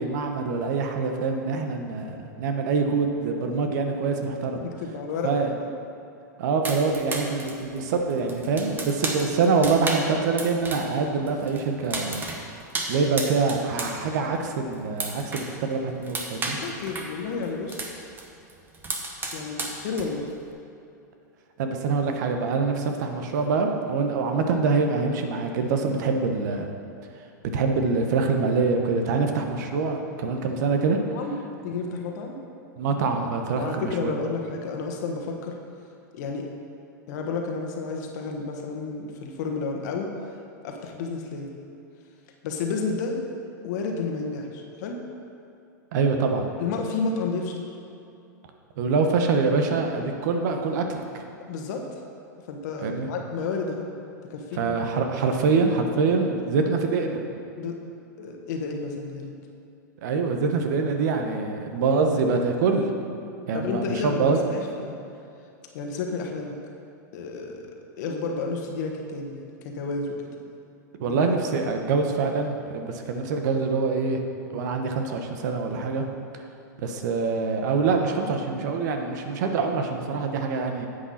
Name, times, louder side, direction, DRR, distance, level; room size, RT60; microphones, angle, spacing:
voice 1, 0.0-4.6 5.2-5.5 6.4-12.2 12.9-16.6 21.6-26.7 27.5-31.0 32.8-34.2 45.9-46.5 48.8-51.2 52.8-53.1 54.5-57.2 60.0-62.9 63.5-64.4 71.0-74.2 74.5-76.1 76.8-80.9, right 4 dB, 65° right, 4 dB, 1.1 m, -25 dB
voice 2, 4.6-5.7 16.4-17.8 19.3-20.3 31.1-31.3 31.6-32.4 33.5-35.6 36.1-36.5 37.1-40.1 40.6-41.5 42.4-43.2 43.6-45.0 46.6-47.6 51.5-51.8 52.5-53.9 54.3-54.8 57.6-57.8 58.2-59.3 63.5-64.9 65.7-66.6 67.1-70.2 71.1-71.2, left 4 dB, 65° left, 2 dB, 1.4 m, -31 dB
sound 1, 6.6-11.0 11.3-13.9 14.2-15.5 15.8-18.2 18.5-20.3, right 3 dB, 20° right, 1.2 m, -33 dB
9.8 x 8.0 x 4.2 m, 2.6 s
hypercardioid pair, 115°, 10 cm